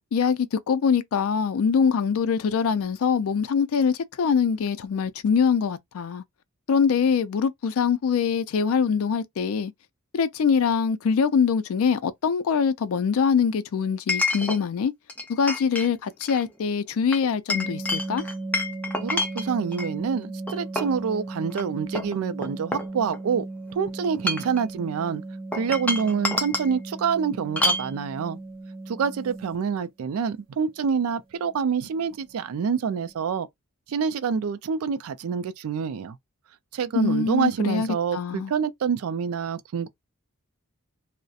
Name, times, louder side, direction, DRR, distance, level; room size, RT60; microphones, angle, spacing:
voice 1, 0.1-6.2 6.7-9.7 10.1-14.9 15.3-18.2 36.9-38.5, left 6 dB, 65° left, 0.4 m, -23 dB
Chink clink, 10.6-10.7 14.1-14.6 15.1-15.9 16.2-16.4 17.1-19.9 20.5-21.0 21.5-21.6 22.0-23.4 24.1-24.6 25.5-26.7 27.6-27.9, left 2 dB, 5° left, 0.5 m, -28 dB
sound 1, 17.5-29.6 31.4-31.6 31.9-32.1 32.4-32.6 32.9-33.2, right 2 dB, 40° right, 0.8 m, -37 dB
voice 2, 18.9-23.4 23.7-25.2 25.5-28.4 28.9-33.5 33.9-36.2 36.7-39.9, right 6 dB, 70° right, 0.3 m, -27 dB
2.4 x 2.0 x 2.6 m
head